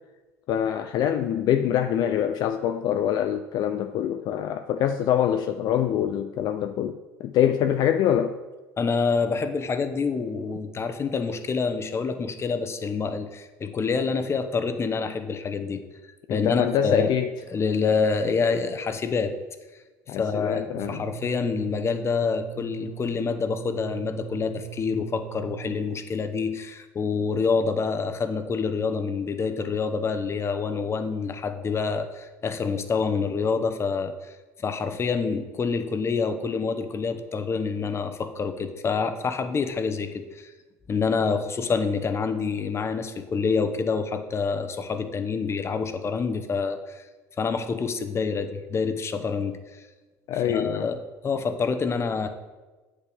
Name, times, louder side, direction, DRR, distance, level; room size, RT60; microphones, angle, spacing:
voice 1, 0.5-8.4 16.3-17.3 20.1-21.0 50.3-50.9, left 9 dB, 55° left, 8 dB, 0.5 m, -25 dB
voice 2, 8.8-15.8 16.3-17.1 17.5-19.3 20.2-34.1 34.6-40.5 40.9-47.0 47.4-49.6 50.5-52.3, left 5 dB, 30° left, 9 dB, 0.9 m, -27 dB
sound 1, 20.8-25.8, right 19 dB, 85° right, 0.6 m, -40 dB
8.4 x 8.2 x 3.5 m, 1.2 s
hypercardioid pair, 80°, 8 cm